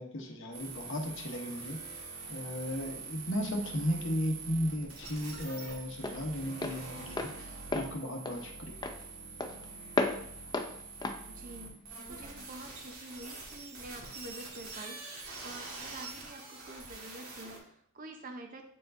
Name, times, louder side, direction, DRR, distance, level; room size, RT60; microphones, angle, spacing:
voice 1, 0.0-1.8 2.3-8.7, equal, 60° left, 2 dB, 1.0 m, -35 dB
sound 1, 0.5-17.6, right 4 dB, 75° right, 1.7 m, -45 dB
Walk footsteps, 3.8-12.4, left 2 dB, 20° left, 0.4 m, -37 dB
voice 2, 11.3-11.8 12.1-15.0 15.4-18.6, right 2 dB, 40° right, 4 dB, 0.7 m, -47 dB
8.1 x 4.7 x 2.6 m, 0.66 s
head